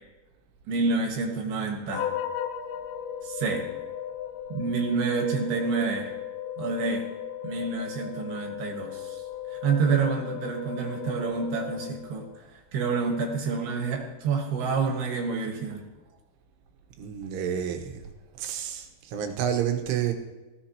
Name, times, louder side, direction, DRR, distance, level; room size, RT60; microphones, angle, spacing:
voice 1, 0.7-2.1 3.3-3.7 4.5-6.1 6.6-7.1 7.4-9.0 9.6-12.3 12.7-15.8, right 4 dB, 65° right, 3 dB, 3.0 m, -28 dB
sound 1, 1.9-12.4, left 9 dB, 85° left, 2.6 m, -36 dB
voice 2, 17.0-18.0 18.4-20.1, right 9 dB, 80° right, 6 dB, 3.6 m, -29 dB
18.0 x 15.0 x 3.0 m, 1.1 s
omnidirectional pair, 5.6 m